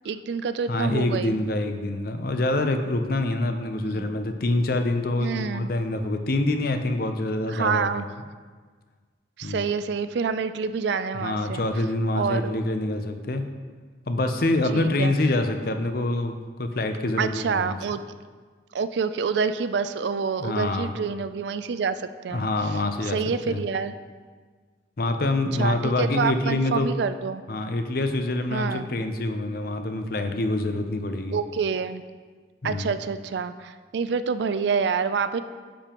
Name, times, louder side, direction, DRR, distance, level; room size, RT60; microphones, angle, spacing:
voice 1, 0.0-1.4 3.7-4.1 5.2-5.7 7.5-8.1 9.4-11.7 12.2-12.6 14.7-15.1 17.2-18.0 18.7-22.5 23.0-23.9 25.6-27.4 28.5-28.9 31.3-32.0 32.6-35.4, right 5 dB, 70° right, 12 dB, 0.4 m, -27 dB
voice 2, 0.7-7.9 9.4-9.7 11.1-13.4 14.1-17.8 20.4-20.9 22.3-23.6 25.0-26.9 27.5-31.4 32.6-33.0, left 2 dB, 55° left, 7 dB, 0.6 m, -26 dB
10.0 x 6.9 x 3.0 m, 1.5 s
head